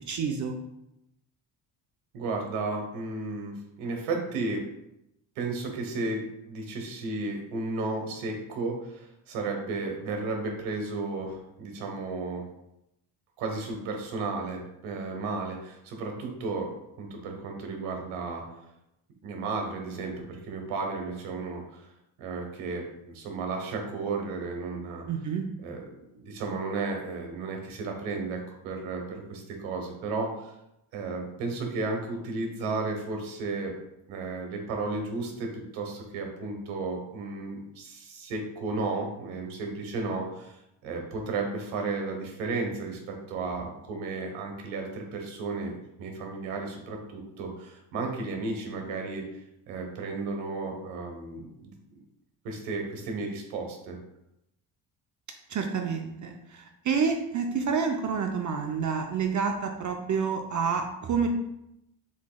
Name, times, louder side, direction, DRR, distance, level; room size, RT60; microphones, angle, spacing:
voice 1, 0.1-0.6 25.1-25.5 55.5-61.3, right 6 dB, 40° right, 4 dB, 0.6 m, -28 dB
voice 2, 2.1-4.6 5.4-12.4 13.4-16.7 17.0-18.4 19.2-21.9 22.2-25.1 25.6-30.5 30.9-33.7 34.1-45.7 46.0-49.2 49.7-52.0 52.4-54.0, right 3 dB, 90° right, 2 dB, 1.2 m, -33 dB
7.2 x 3.1 x 2.3 m, 0.84 s
cardioid pair, 100°, 47 cm